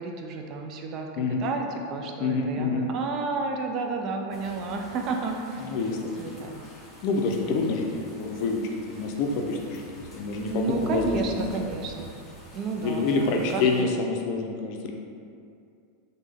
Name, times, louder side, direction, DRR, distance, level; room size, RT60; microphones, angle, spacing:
voice 1, 0.0-1.1 1.4-5.4 6.2-6.6 10.5-12.2 12.5-13.9, right 3 dB, 45° right, 3 dB, 0.3 m, -31 dB
voice 2, 2.2-2.9 5.6-6.4 7.0-8.6 8.9-11.4 12.8-14.9, left 4 dB, 55° left, 1 dB, 0.4 m, -27 dB
sound 1, 4.3-13.8, equal, 15° left, 1.0 m, -47 dB
3.2 x 2.1 x 3.4 m, 2.4 s
hypercardioid pair, 95°, 0 cm